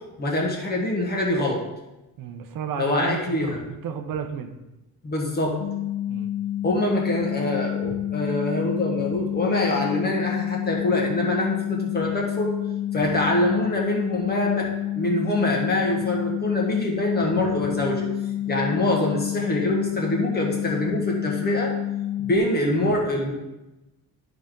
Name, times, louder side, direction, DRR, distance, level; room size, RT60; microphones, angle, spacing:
voice 1, 0.2-1.6 2.8-3.6 5.0-5.5 6.6-12.5 12.9-14.7 14.9-18.1 18.5-21.7 22.2-23.3, left 1 dB, 25° left, -1 dB, 1.5 m, -25 dB
voice 2, 2.2-4.6 6.1-6.3, right 7 dB, 60° right, 6 dB, 0.8 m, -32 dB
sound 1, 5.6-22.4, left 12 dB, 60° left, 0.7 m, -28 dB
11.0 x 5.1 x 3.8 m, 1.0 s
cardioid pair, 170°, 38 cm